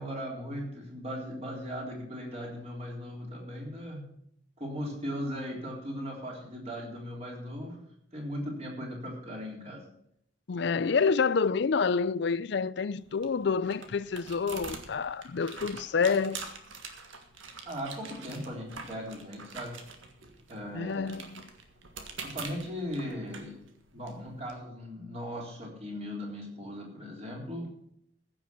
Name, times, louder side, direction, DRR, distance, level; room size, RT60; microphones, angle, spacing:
voice 1, 0.0-4.1 4.6-7.8 8.1-9.8 17.7-19.8 20.5-21.2 22.2-23.6 23.9-27.7, equal, 35° right, 3.7 m, -38 dB
voice 2, 10.5-16.4 20.7-21.4, left 5 dB, 60° left, 0.4 m, -28 dB
sound 1, 12.8-24.5, right 5 dB, 85° right, 1.7 m, -45 dB
15.0 x 6.3 x 7.0 m
head